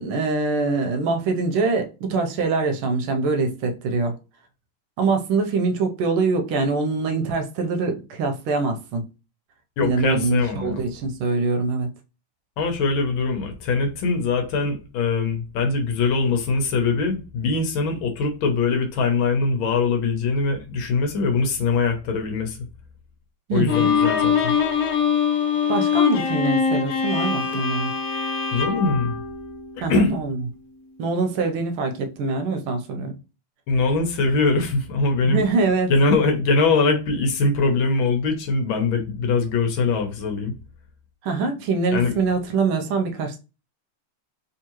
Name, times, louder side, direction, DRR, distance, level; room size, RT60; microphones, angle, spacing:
voice 1, 0.0-4.1 5.0-9.0 9.8-11.9 23.5-23.9 25.7-27.9 29.8-30.4 31.0-33.2 35.2-35.9 41.2-43.4, right 3 dB, 80° right, 1.5 m, -24 dB
voice 2, 9.8-10.8 12.6-22.6 23.5-24.5 28.5-29.2 29.8-30.2 33.7-35.4 35.9-40.5 41.9-42.1, left 4 dB, 70° left, 1.5 m, -22 dB
Bowed string instrument, 23.7-30.0, left 6 dB, 90° left, 1.7 m, -23 dB
3.6 x 3.2 x 2.9 m
omnidirectional pair, 2.4 m